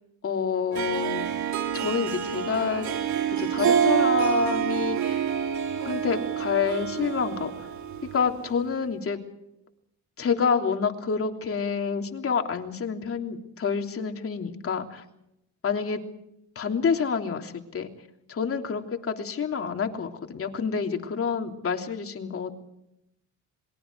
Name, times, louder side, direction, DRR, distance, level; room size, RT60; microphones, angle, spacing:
voice 1, 0.2-1.3 1.7-2.9 3.3-5.3 5.8-7.7 8.1-9.2 10.2-15.0 15.6-16.0 16.5-17.9 18.3-22.5, left 6 dB, 50° left, 4 dB, 3.3 m, -28 dB
Harp, 0.7-8.4, right 8 dB, 70° right, 3.2 m, -27 dB
27.0 x 22.0 x 4.8 m, 0.82 s
cardioid pair, 90°, 30 cm